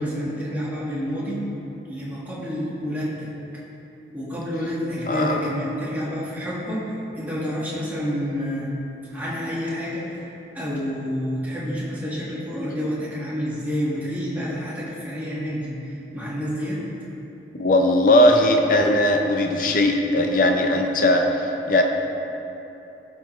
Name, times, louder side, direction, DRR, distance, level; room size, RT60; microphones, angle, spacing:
voice 1, 0.0-1.4 1.9-3.3 4.1-6.8 7.2-8.7 9.1-10.1 10.6-16.8, equal, 10° right, -8 dB, 1.7 m, -28 dB
voice 2, 5.1-5.4 17.5-21.8, left 1 dB, 50° left, 3 dB, 0.6 m, -19 dB
14.5 x 5.9 x 3.1 m, 3.0 s
head